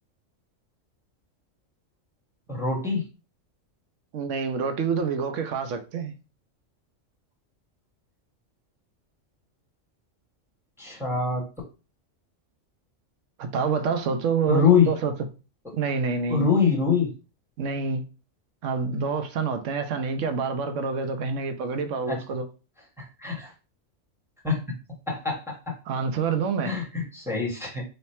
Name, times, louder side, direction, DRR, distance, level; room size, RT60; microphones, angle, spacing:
voice 1, 2.5-3.0 10.8-11.4 14.5-14.9 16.3-17.1 22.1-22.2 23.0-23.5 24.4-24.6 25.1-25.5 26.6-27.8, left 5 dB, ahead, 0.9 m, -24 dB
voice 2, 4.1-6.1 13.4-15.1 15.7-16.5 17.6-18.0 18.6-22.5 25.9-26.8, right 5 dB, 75° right, 1.0 m, -27 dB
3.2 x 2.2 x 4.2 m
omnidirectional pair, 1.3 m